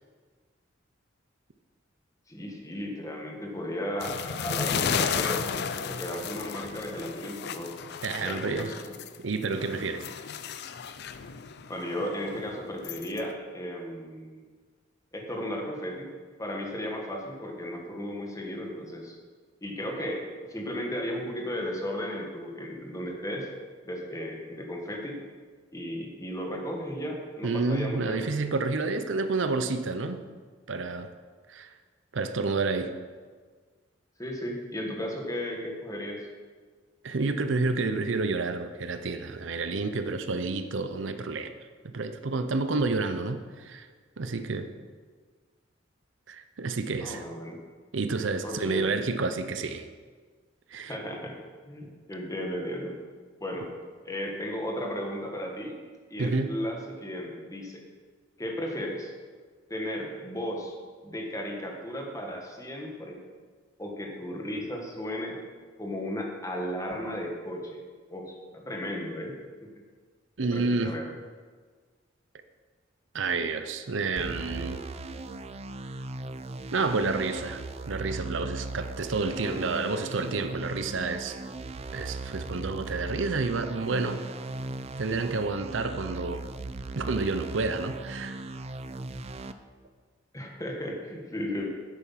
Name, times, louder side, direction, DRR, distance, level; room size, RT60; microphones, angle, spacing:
voice 1, 2.3-7.9 8.1-8.9 11.7-14.5 15.1-16.1 16.4-19.1 19.6-20.2 20.5-23.5 23.8-25.2 25.7-28.3 34.2-36.3 47.0-47.6 48.4-49.0 50.9-51.4 51.7-53.0 53.4-53.7 54.0-55.8 56.1-57.8 58.4-59.1 59.7-60.7 61.0-63.2 63.8-65.4 65.8-67.8 68.1-69.3 69.6-69.7 70.5-71.1 90.3-91.7, equal, 15° left, 1 dB, 1.6 m, -35 dB
sound 1, 4.0-9.2 9.5-13.2, left 7 dB, 60° left, 0.5 m, -34 dB
voice 2, 8.0-8.7 9.2-10.0 27.4-30.2 30.7-31.1 31.5-31.7 32.1-32.9 37.0-41.5 41.9-43.9 44.2-44.7 46.3-47.2 47.9-49.9 50.7-51.0 56.2-56.6 70.4-70.9 73.1-74.8 76.7-81.4 81.9-84.2 85.0-86.4 86.9-88.4, right 3 dB, 70° right, 9 dB, 0.7 m, -29 dB
sound 2, 74.2-89.5, right 2 dB, 35° right, 0.5 m, -38 dB
9.8 x 8.2 x 5.8 m, 1.5 s
head